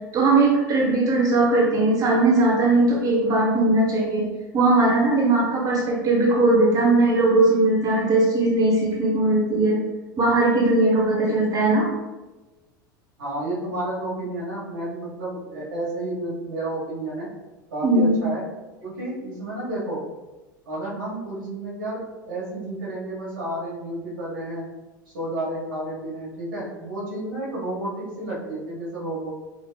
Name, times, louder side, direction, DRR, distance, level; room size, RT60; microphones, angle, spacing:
voice 1, 0.1-4.3 4.5-9.8 10.2-11.9 17.8-18.2, right 2 dB, 35° right, -3 dB, 1.2 m, -19 dB
voice 2, 13.2-17.3 17.7-18.4 18.8-20.0 20.7-24.7 25.1-29.3, right 1 dB, 85° right, -7 dB, 1.4 m, -31 dB
4.5 x 2.3 x 2.2 m, 1.1 s
hypercardioid pair, 90°, 11 cm